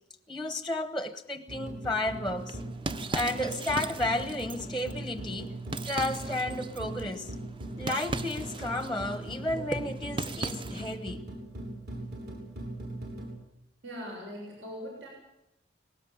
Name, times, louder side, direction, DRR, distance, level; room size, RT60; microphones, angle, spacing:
voice 1, 0.3-2.6 3.1-5.5 5.9-7.3 7.8-11.2, left 1 dB, ahead, 0.9 m, -32 dB
sound 1, 1.5-13.3, right 1 dB, 55° right, 7.1 m, -40 dB
sound 2, 2.4-11.0, right 3 dB, 25° right, 0.7 m, -39 dB
voice 2, 13.8-15.1, equal, 70° right, 7.4 m, -40 dB
20.0 x 18.0 x 8.6 m
head